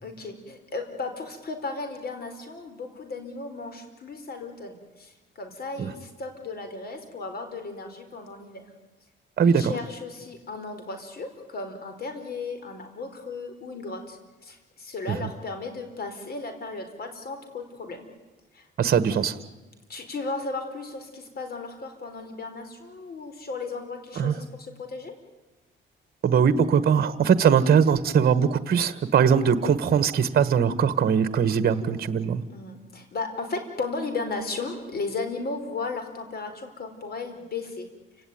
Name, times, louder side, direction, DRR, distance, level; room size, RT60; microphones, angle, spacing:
voice 1, 0.0-8.7 9.4-18.1 18.5-18.9 19.9-25.1 32.5-37.9, left 3 dB, 50° left, 7 dB, 4.6 m, -35 dB
voice 2, 9.4-9.7 15.1-15.3 18.8-19.3 24.2-24.4 26.2-32.4, right 7 dB, 50° right, 12 dB, 1.4 m, -21 dB
29.0 x 17.5 x 9.4 m, 1.2 s
cardioid pair, 90°, 20 cm